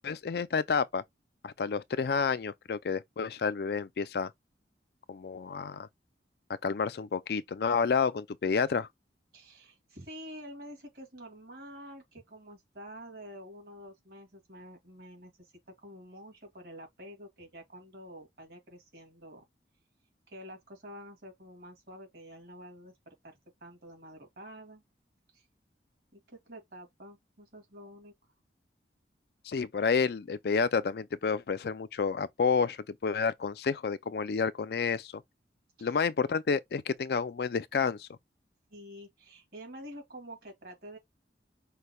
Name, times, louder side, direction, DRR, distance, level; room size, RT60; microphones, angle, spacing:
voice 1, 0.0-1.0 1.4-4.3 5.1-5.9 6.6-8.9 29.5-35.2 35.8-38.1, left 5 dB, 60° left, 0.4 m, -30 dB
voice 2, 9.3-19.4 20.3-24.8 25.3-25.5 26.1-28.1 35.8-36.0 38.7-41.0, equal, 60° right, 2.5 m, -48 dB
5.6 x 3.3 x 2.2 m
head